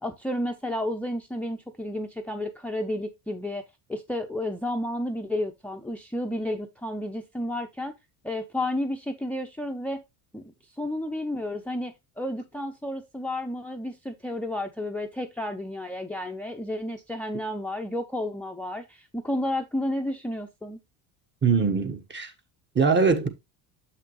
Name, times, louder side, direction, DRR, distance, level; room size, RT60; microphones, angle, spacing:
voice 1, 0.0-3.6 3.9-7.9 8.2-10.0 10.3-20.8, left 1 dB, 5° left, 0.6 m, -31 dB
voice 2, 21.4-22.3 22.7-23.3, right 5 dB, 25° right, 1.2 m, -22 dB
7.2 x 5.8 x 3.0 m
cardioid pair, 110°, 42 cm